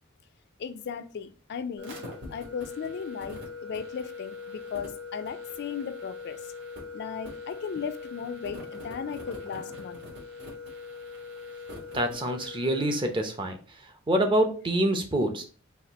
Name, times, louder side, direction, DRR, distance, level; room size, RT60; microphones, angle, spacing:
voice 1, 0.6-2.0 2.3-6.4 6.9-10.0, left 6 dB, 55° left, 0.3 m, -36 dB
sound 1, 1.8-13.1, left 4 dB, 55° right, 1.6 m, -41 dB
voice 2, 11.9-15.5, right 1 dB, 25° right, 0.6 m, -26 dB
4.2 x 2.4 x 4.0 m
head